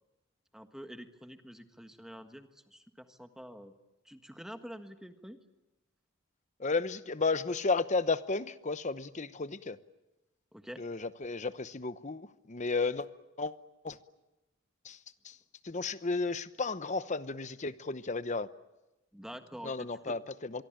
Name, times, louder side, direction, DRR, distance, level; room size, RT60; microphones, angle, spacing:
voice 1, 0.5-3.7 4.0-5.4 10.5-10.8 19.1-20.2, equal, ahead, 7 dB, 1.6 m, -47 dB
voice 2, 6.6-9.8 10.8-13.1 13.4-13.5 13.8-14.0 14.8-15.0 15.2-15.4 15.6-18.5 19.6-20.6, left 3 dB, 35° left, 13 dB, 0.9 m, -33 dB
25.5 x 23.5 x 9.0 m, 1.0 s
head